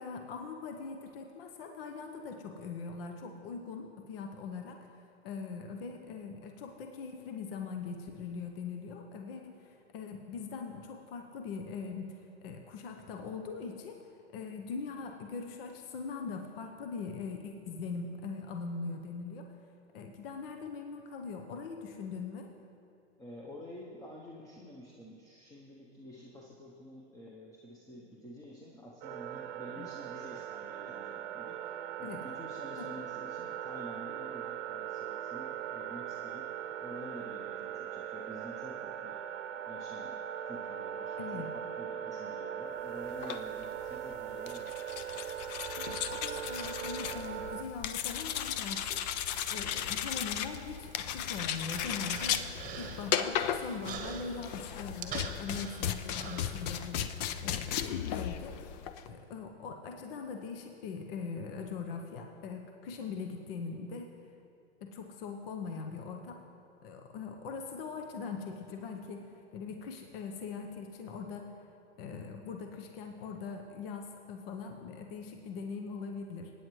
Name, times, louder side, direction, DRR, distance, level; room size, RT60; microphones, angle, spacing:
voice 1, 0.0-14.0 14.3-19.5 19.9-22.5 29.8-29.9 32.0-32.2 32.8-32.9 41.2-41.5 45.8-49.0 49.5-52.4 52.7-57.0 57.4-58.6 59.0-64.1 64.8-66.4 66.8-71.5 72.0-76.5, left 5 dB, 55° left, 4 dB, 1.0 m, -41 dB
voice 2, 23.2-36.5 36.8-39.2 39.7-40.2 40.4-44.8, left 1 dB, 10° left, -3 dB, 0.9 m, -49 dB
sound 1, 29.0-47.6, right 9 dB, 40° right, 0.8 m, -40 dB
sound 2, 43.1-59.1, left 9 dB, 40° left, 0.5 m, -36 dB
Human voice, 50.9-57.1, right 6 dB, 25° right, 1.1 m, -45 dB
20.5 x 9.5 x 3.2 m, 2.6 s
hypercardioid pair, 125°, 35 cm